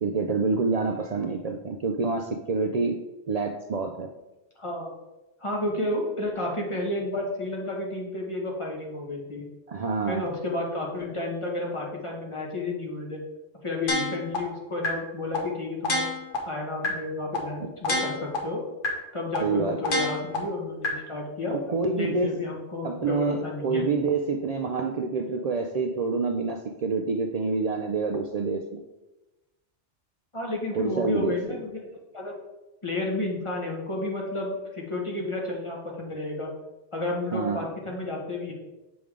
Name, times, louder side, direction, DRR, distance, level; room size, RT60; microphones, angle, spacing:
voice 1, 0.0-3.0 3.3-4.1 9.7-10.3 19.4-20.0 21.5-22.4 22.8-28.8 30.8-31.4 37.3-37.7, right 4 dB, 85° right, 4 dB, 0.3 m, -27 dB
voice 2, 4.6-4.9 5.4-9.5 10.1-13.2 13.6-16.1 16.5-18.6 19.1-21.6 22.0-23.8 30.3-31.8 32.1-32.3 32.8-36.5 36.9-38.5, left 2 dB, 25° left, -1 dB, 1.4 m, -31 dB
sound 1, 13.9-14.4 14.8-14.9 15.3-15.4 15.8-16.4 16.8-16.9 17.3-17.4 17.8-18.4 18.8-18.9 19.3-19.4 19.8-20.4 20.8-20.9, left 2 dB, 50° left, 1.3 m, -27 dB
7.0 x 5.1 x 3.7 m, 1.0 s
omnidirectional pair, 1.2 m